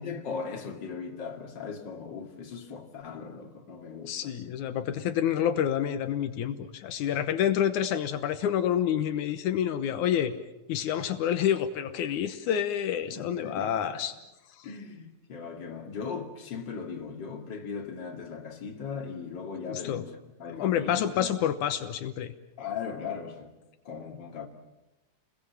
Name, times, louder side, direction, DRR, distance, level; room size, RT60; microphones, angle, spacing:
voice 1, 0.0-4.3 13.1-13.9 14.6-20.1 20.4-21.3 22.6-23.5 23.8-24.5, left 5 dB, 40° left, 2.8 m, -38 dB
voice 2, 4.1-10.3 10.7-14.1 14.6-14.7 19.7-20.1 20.5-22.3, left 9 dB, 80° left, 2.5 m, -28 dB
30.0 x 21.5 x 7.3 m
omnidirectional pair, 3.4 m